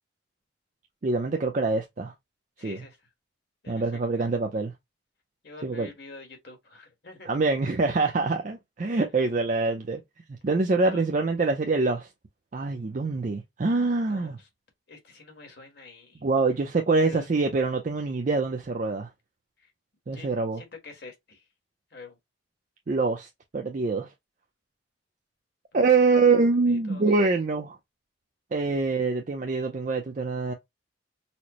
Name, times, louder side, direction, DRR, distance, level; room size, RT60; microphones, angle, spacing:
voice 1, 1.0-2.1 2.6-2.8 3.7-4.7 5.6-5.9 7.3-10.0 10.4-12.1 12.5-14.4 16.2-19.1 20.1-20.6 22.9-24.1 25.7-27.8 28.5-30.5, right 3 dB, 40° right, 0.4 m, -25 dB
voice 2, 2.6-3.0 3.6-3.8 5.4-7.3 10.9-11.0 14.0-14.5 14.9-16.2 17.0-17.3 19.6-19.7 20.1-20.3 20.6-21.4 21.9-22.2 25.7-26.2 26.6-27.0, left 3 dB, 55° left, 1.3 m, -46 dB
4.2 x 2.0 x 2.9 m
head